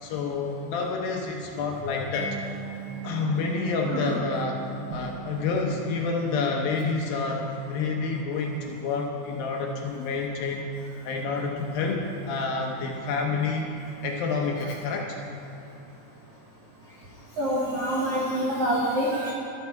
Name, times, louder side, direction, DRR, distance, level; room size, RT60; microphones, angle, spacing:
voice 1, 0.0-2.4 3.0-4.6 4.9-10.7 11.0-13.8 14.0-15.2, left 4 dB, 75° left, 0 dB, 2.3 m, -28 dB
Mallet percussion, 2.1-8.9, right 6 dB, 55° left, 3.7 m, -41 dB
voice 2, 17.4-19.3, equal, 85° right, -5 dB, 1.3 m, -26 dB
12.5 x 12.0 x 4.7 m, 2.8 s
omnidirectional pair, 4.9 m